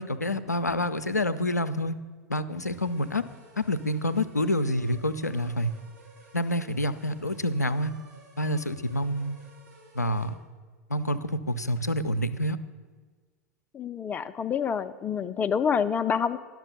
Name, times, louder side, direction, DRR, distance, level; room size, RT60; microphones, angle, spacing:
voice 1, 0.0-2.0 2.3-3.2 3.6-5.7 6.3-7.9 8.4-9.4 9.9-10.3 10.9-12.6, left 1 dB, 85° left, 12 dB, 0.4 m, -27 dB
sound 1, 2.6-10.3, right 2 dB, 80° right, 3.4 m, -54 dB
voice 2, 13.7-16.4, left 7 dB, 20° left, 12 dB, 0.4 m, -27 dB
11.0 x 6.0 x 6.8 m, 1.5 s
figure-of-eight pair, 90°, 9 cm